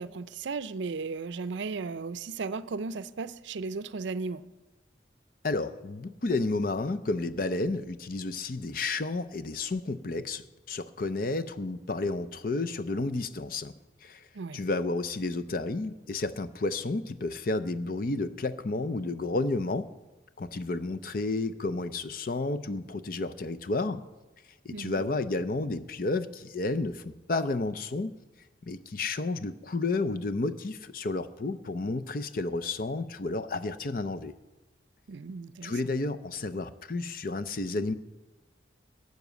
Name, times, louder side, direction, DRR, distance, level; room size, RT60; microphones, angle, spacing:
voice 1, 0.0-4.4 14.3-14.6 24.7-25.0 35.1-35.7, right 4 dB, 75° right, 0.5 m, -35 dB
voice 2, 5.4-13.7 14.0-14.3 14.5-19.9 20.4-24.0 24.6-28.2 28.6-34.3 35.6-37.9, left 3 dB, 50° left, 0.5 m, -31 dB
12.0 x 6.5 x 8.1 m
head